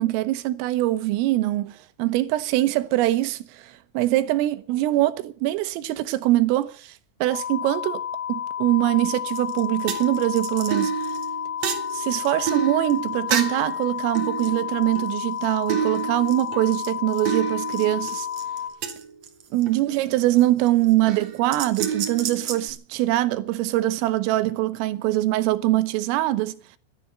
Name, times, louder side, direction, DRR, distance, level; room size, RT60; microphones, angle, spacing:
voice 1, 0.0-8.0 8.3-11.0 11.9-18.3 19.5-26.6, right 16 dB, 85° right, 3.6 m, -23 dB
sound 1, 7.3-18.7, left 9 dB, 65° left, 3.4 m, -31 dB
sound 2, 9.4-9.6 9.9-13.7 14.1-15.4 15.7-19.7 20.4-20.7 21.1-22.7, right 8 dB, 65° right, 1.7 m, -30 dB
13.0 x 11.5 x 9.2 m
omnidirectional pair, 5.8 m